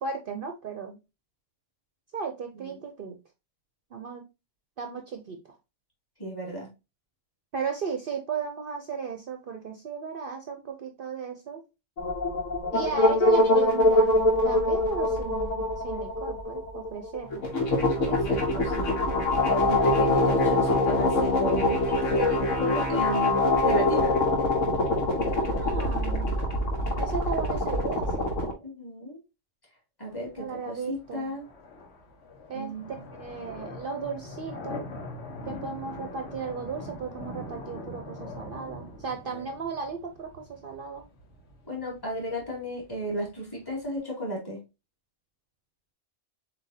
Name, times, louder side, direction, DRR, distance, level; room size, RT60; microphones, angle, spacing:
voice 1, 0.0-1.0 2.1-3.1 3.9-4.3 4.8-5.4 7.5-11.6 12.7-17.5 25.3-26.3 27.0-28.3 30.4-31.3 32.5-32.7 33.2-34.9 35.5-41.0, right 5 dB, 55° right, 4 dB, 0.7 m, -35 dB
voice 2, 6.2-6.7 18.1-18.9 19.4-21.8 22.1-24.1 28.6-29.2 30.0-31.5 32.5-33.0 39.2-39.5 41.7-44.6, equal, 20° left, -4 dB, 2.4 m, -34 dB
sound 1, 12.0-28.5, left 1 dB, 80° left, 1.3 m, -24 dB
sound 2, 30.1-44.0, left 2 dB, 65° left, 1.3 m, -43 dB
7.2 x 2.7 x 2.7 m, 0.26 s
omnidirectional pair, 1.3 m